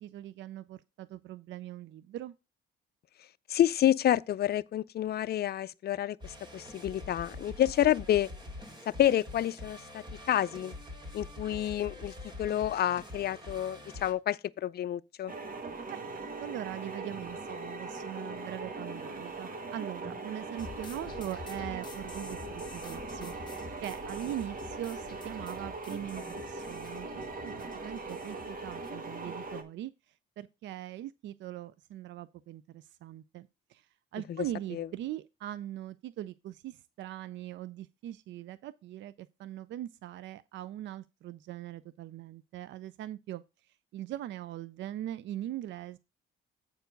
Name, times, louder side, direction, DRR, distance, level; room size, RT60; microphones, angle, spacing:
voice 1, 0.0-2.3 15.9-46.0, right 13 dB, 70° right, 0.4 m, -41 dB
voice 2, 3.5-8.3 9.0-10.7 11.1-12.1 12.4-15.3 34.3-34.4 34.7-34.9, left 11 dB, 55° left, 0.5 m, -29 dB
sound 1, 6.2-14.1, left 2 dB, 20° right, 2.2 m, -45 dB
sound 2, 15.3-29.6, right 3 dB, 45° right, 1.7 m, -40 dB
sound 3, 20.6-28.9, left 5 dB, 20° left, 1.9 m, -49 dB
8.0 x 4.5 x 5.1 m
cardioid pair, 90°, 20 cm